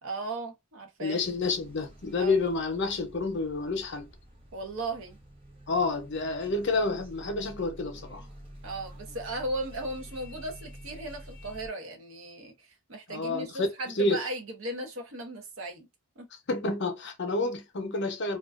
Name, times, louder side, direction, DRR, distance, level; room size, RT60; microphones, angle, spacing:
voice 1, 0.0-1.2 2.2-2.4 4.5-5.2 8.6-15.9 16.2-16.3, right 1 dB, 65° right, 0.8 m, -36 dB
voice 2, 1.0-4.1 5.7-8.2 13.1-13.7 13.9-14.2 16.5-18.4, left 3 dB, 50° left, 0.6 m, -29 dB
sound 1, 1.2-11.7, equal, 25° right, 0.8 m, -49 dB
2.3 x 2.2 x 2.3 m
head